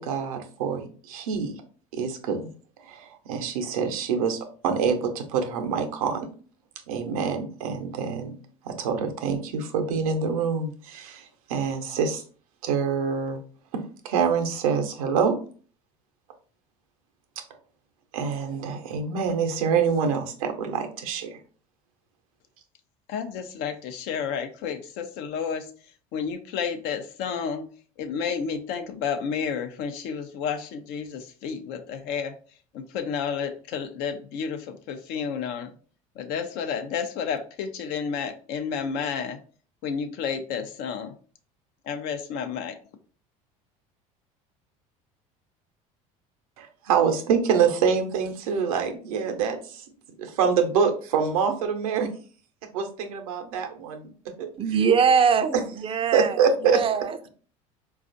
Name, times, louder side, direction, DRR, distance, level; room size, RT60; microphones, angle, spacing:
voice 1, 0.0-1.5 1.9-2.4 2.8-6.3 6.9-8.3 8.6-12.2 12.6-13.4 13.7-15.4 18.1-21.4 46.6-49.8 50.2-52.1 52.7-54.1 54.4-54.5 55.5-55.6 56.1-56.8, right 6 dB, 85° right, 5 dB, 0.7 m, -26 dB
voice 2, 23.1-25.7 26.1-27.7 28.0-32.3 32.7-35.7 36.2-39.4 39.8-41.1 41.9-42.8, left 6 dB, 65° left, 7 dB, 0.6 m, -31 dB
voice 3, 54.6-56.4 56.7-57.3, right 6 dB, 30° right, 10 dB, 0.4 m, -22 dB
4.2 x 2.4 x 2.5 m, 0.41 s
hypercardioid pair, 80°, 18 cm